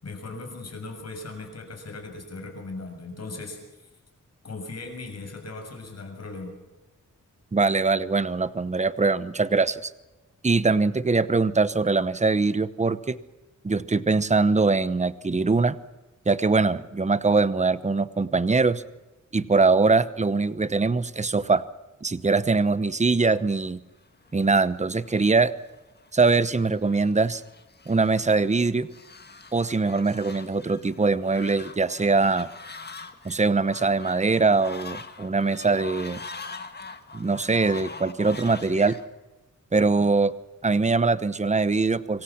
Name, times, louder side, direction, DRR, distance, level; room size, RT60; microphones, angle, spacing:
voice 1, 0.0-3.6 4.4-6.5, left 3 dB, 50° left, 4 dB, 7.0 m, -38 dB
voice 2, 7.5-9.9 10.4-13.2 13.6-15.7 16.3-18.8 19.3-21.6 22.0-23.8 24.3-25.5 26.1-27.4 27.9-28.9 29.5-32.5 33.2-36.2 37.1-39.0 39.7-40.3 40.6-42.2, right 3 dB, 20° right, 15 dB, 0.9 m, -22 dB
Fowl, 24.2-39.1, left 4 dB, 30° left, 1.7 m, -43 dB
26.5 x 24.5 x 6.0 m, 1.1 s
wide cardioid pair, 170°, 32 cm